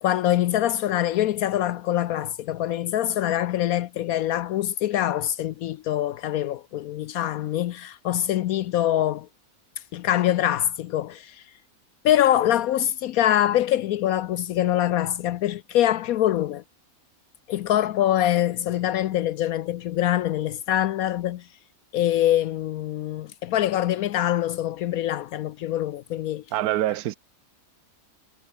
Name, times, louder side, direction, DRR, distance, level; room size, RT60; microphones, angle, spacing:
voice 1, 0.0-9.3 9.9-11.4 12.0-16.6 17.5-21.5 21.9-26.4, left 12 dB, 75° left, 1.0 m, -24 dB
voice 2, 26.5-27.2, right 14 dB, 85° right, 1.2 m, -25 dB
omnidirectional pair, 1.6 m